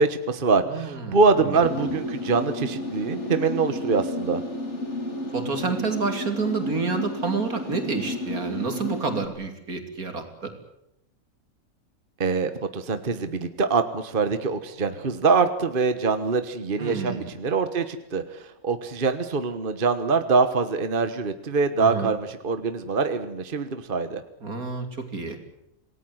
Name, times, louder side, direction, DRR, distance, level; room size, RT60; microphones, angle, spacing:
voice 1, 0.0-4.4 12.2-24.2, right 4 dB, 40° right, 10 dB, 1.5 m, -24 dB
voice 2, 0.6-1.2 1.4-1.6 5.3-10.5 16.8-17.3 21.8-22.1 24.4-25.4, right 4 dB, 75° right, 6 dB, 3.5 m, -29 dB
sound 1, 1.6-9.3, left 1 dB, 50° left, 3.2 m, -32 dB
27.5 x 18.5 x 8.0 m, 0.83 s
omnidirectional pair, 1.5 m